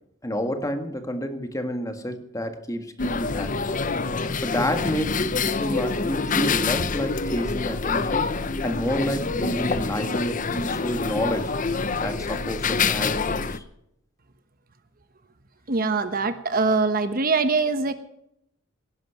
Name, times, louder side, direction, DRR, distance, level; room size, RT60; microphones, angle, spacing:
voice 1, 0.2-3.6 4.4-8.3 8.6-11.5 12.0-13.6, equal, 15° left, 6 dB, 1.6 m, -29 dB
sound 1, 3.0-13.6, left 4 dB, 40° left, 0.8 m, -26 dB
voice 2, 15.7-17.9, right 4 dB, 45° right, 10 dB, 1.1 m, -23 dB
18.5 x 11.0 x 5.9 m, 0.77 s
head